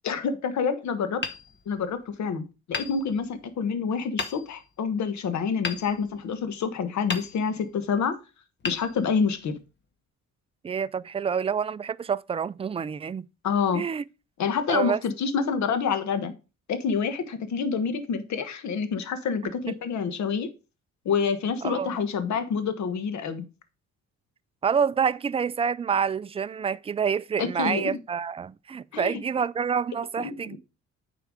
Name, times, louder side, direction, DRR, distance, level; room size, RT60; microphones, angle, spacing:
voice 1, 0.0-1.2 1.7-8.1 8.6-9.6 13.4-13.8 14.4-16.3 16.7-20.5 21.0-23.4 27.4-28.0 28.9-29.2 30.2-30.6, left 6 dB, 65° left, 1.4 m, -27 dB
Hammer, 1.2-2.2 2.7-3.6 4.2-4.8 5.6-6.6 7.1-7.8 8.6-9.6, left 4 dB, 35° left, 1.2 m, -36 dB
voice 2, 10.6-13.3 13.7-14.0 14.7-15.0 21.6-22.0 24.6-30.6, right 7 dB, 20° right, 0.3 m, -27 dB
9.2 x 4.7 x 4.9 m
cardioid pair, 90°, 30 cm